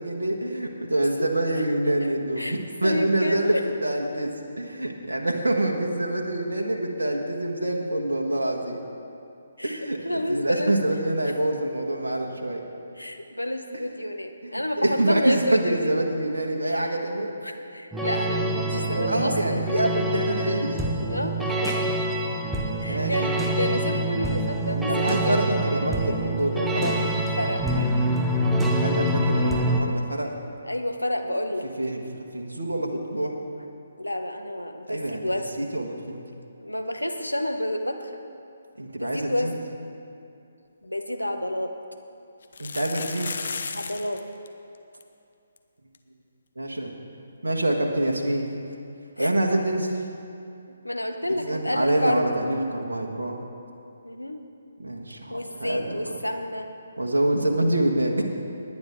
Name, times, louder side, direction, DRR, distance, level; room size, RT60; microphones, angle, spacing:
voice 1, 0.0-4.3 4.6-8.8 9.6-12.6 14.4-14.5 14.8-17.3 18.9-20.8 22.8-23.1 24.9-27.0 28.8-30.3 31.8-33.4 34.9-35.3 35.6-36.2 38.8-39.5 42.6-43.4 46.6-46.9 47.4-48.5 49.2-50.0 51.4-53.4 54.8-56.0 57.0-58.2, right 1 dB, 70° right, 0 dB, 1.5 m, -26 dB
voice 2, 2.8-3.6 9.6-9.8 10.0-10.7 13.0-15.9 16.7-19.6 21.0-21.9 22.8-24.9 25.2-25.8 26.9-27.0 27.4-27.9 30.6-31.7 34.0-35.5 36.6-38.2 38.9-39.5 40.8-41.7 43.7-44.2 49.2-49.3 50.8-52.2 54.0-54.5 55.3-56.7, left 1 dB, 85° left, 6 dB, 1.1 m, -29 dB
sound 1, 17.9-29.8, right 1 dB, 5° right, 0.8 m, -26 dB
sound 2, 40.8-40.9 41.2-41.3 42.4-44.2 44.5-44.6 44.7-45.0 45.6-45.7 45.9-46.0 48.1-48.2, left 5 dB, 55° left, 0.8 m, -34 dB
20.0 x 9.6 x 3.6 m, 2.5 s
figure-of-eight pair, 140°, 0 cm